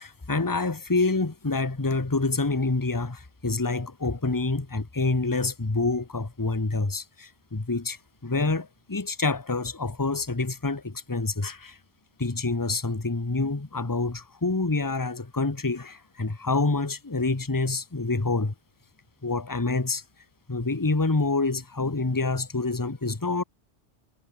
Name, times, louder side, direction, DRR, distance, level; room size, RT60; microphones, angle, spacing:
voice 1, 0.0-8.0 8.2-11.7 12.2-18.5 19.2-20.0 20.5-23.4, left 3 dB, 15° left, 1.3 m, -27 dB
omnidirectional pair, 1.2 m